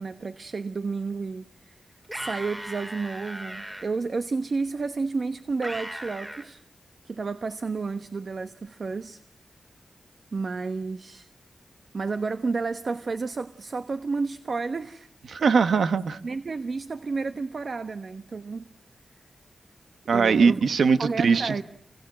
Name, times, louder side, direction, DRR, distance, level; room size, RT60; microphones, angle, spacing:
voice 1, 0.0-1.8 2.1-6.6 7.0-9.2 10.3-11.3 11.9-15.1 16.2-18.7 20.1-20.6 21.0-21.6, right 4 dB, 55° right, 1.1 m, -31 dB
sound 1, 2.0-3.8 5.6-6.5, equal, 15° right, 3.4 m, -37 dB
voice 2, 15.3-16.2 20.1-21.5, right 5 dB, 85° right, 1.2 m, -21 dB
29.0 x 24.0 x 7.7 m
wide cardioid pair, 80°, 0 cm